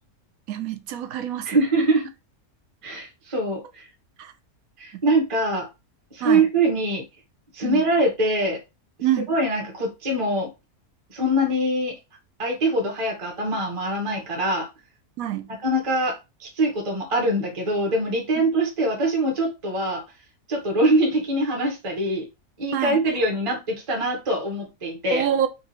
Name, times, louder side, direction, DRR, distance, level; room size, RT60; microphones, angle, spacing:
voice 1, 0.5-1.6 4.2-4.3 6.2-6.4 7.6-7.8 9.0-9.3 15.2-15.5 22.7-23.0 25.1-25.5, right 10 dB, 75° right, 1.0 m, -26 dB
voice 2, 1.4-2.1 2.8-3.9 4.8-5.7 6.1-7.0 7.5-8.6 9.3-10.5 11.1-12.0 12.4-14.7 15.5-20.0 20.5-22.2 22.6-25.3, right 1 dB, 25° right, 1.1 m, -23 dB
4.0 x 2.6 x 4.2 m
omnidirectional pair, 1.5 m